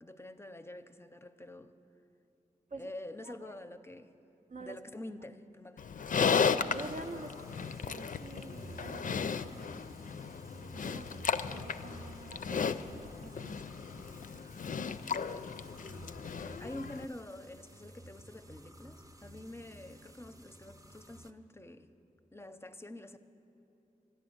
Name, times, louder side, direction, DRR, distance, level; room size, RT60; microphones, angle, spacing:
voice 1, 0.0-1.7 2.8-4.1 4.6-5.8 16.3-21.9 22.3-23.2, left 1 dB, 15° left, 0.5 m, -47 dB
voice 2, 3.2-3.6 4.5-4.8 6.5-7.3 7.6-9.5 10.6-13.6 14.1-14.2, right 3 dB, 65° right, 0.6 m, -48 dB
Livestock farm animals working animals, 5.8-17.0, left 6 dB, 70° left, 0.4 m, -35 dB
sound 1, 6.7-21.3, equal, 25° right, 0.7 m, -53 dB
13.0 x 10.5 x 7.8 m
wide cardioid pair, 95°, 14 cm